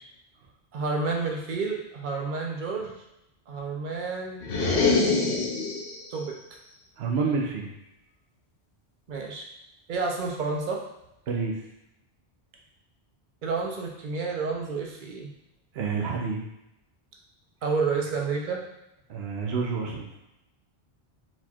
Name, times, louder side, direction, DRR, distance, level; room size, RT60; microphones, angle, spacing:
voice 1, 0.7-2.9 3.5-4.5 6.1-6.4 9.1-9.5 9.9-10.8 13.4-15.3 17.6-18.6, right 4 dB, 55° right, 1 dB, 0.8 m, -30 dB
sound 1, 4.4-6.0, left 4 dB, 70° left, 0.9 m, -24 dB
voice 2, 7.0-7.7 11.3-11.6 15.7-16.4 19.1-20.1, right 4 dB, 80° right, 0 dB, 0.9 m, -28 dB
4.3 x 4.1 x 2.4 m, 0.86 s
omnidirectional pair, 1.1 m